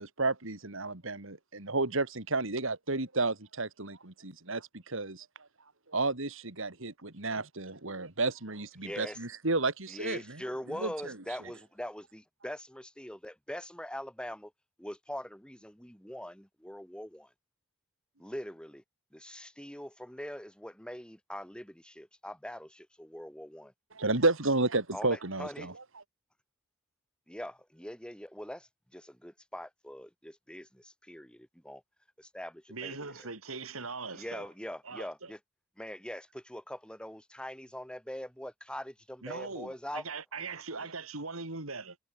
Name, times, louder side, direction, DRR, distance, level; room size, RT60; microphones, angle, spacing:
voice 1, 0.0-5.2 5.9-10.4 10.7-11.2 23.9-25.7, right 3 dB, 65° right, 3.2 m, -32 dB
voice 2, 8.8-9.2 9.9-14.5 14.8-17.3 18.2-18.8 19.1-23.7 24.9-25.7 27.3-31.8 32.2-33.3 34.1-35.4 35.8-40.0, equal, 5° left, 7.1 m, -42 dB
voice 3, 32.7-34.5 34.8-35.3 39.2-42.0, right 4 dB, 85° right, 3.5 m, -40 dB
head